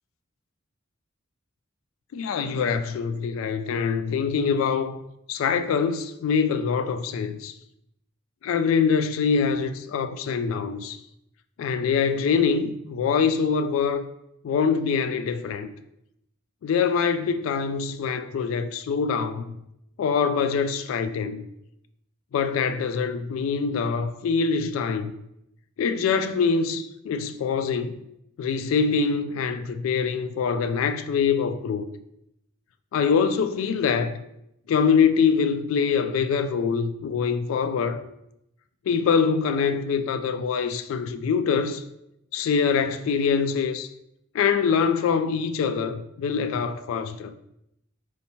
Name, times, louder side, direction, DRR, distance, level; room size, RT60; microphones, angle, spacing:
voice 1, 2.1-5.0 5.3-7.5 8.4-11.0 11.6-14.1 14.4-15.7 16.6-19.6 20.0-21.5 22.3-25.1 25.8-27.9 28.4-31.9 32.9-34.2 34.7-38.1 38.9-41.8 42.3-43.9 44.3-47.3, left 6 dB, 85° left, 0.3 m, -24 dB
4.3 x 2.8 x 2.9 m
head